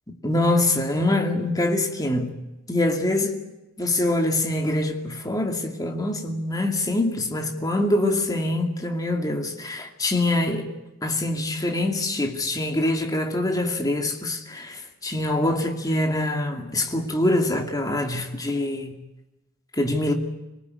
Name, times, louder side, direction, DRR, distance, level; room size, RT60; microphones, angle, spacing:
voice 1, 0.2-2.4 2.7-3.5 3.8-10.7 11.0-18.9 19.8-20.1, left 1 dB, 15° left, 2.4 m, -24 dB
26.0 x 19.0 x 9.6 m
head